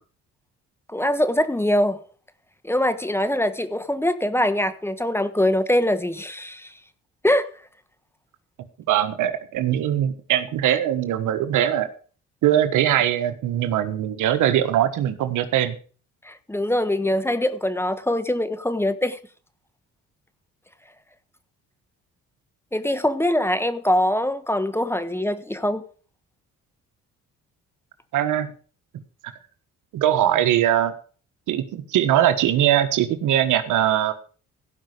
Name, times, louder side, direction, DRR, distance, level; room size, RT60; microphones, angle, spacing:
voice 1, 0.9-2.0 2.6-6.7 7.2-7.5 16.2-19.2 22.7-25.8, left 1 dB, 10° left, 1.2 m, -23 dB
voice 2, 8.9-11.9 12.4-15.8 28.1-28.5 29.9-30.9 31.5-34.1, right 11 dB, 85° right, 1.4 m, -21 dB
16.5 x 5.5 x 6.6 m
cardioid pair, 90°, 30 cm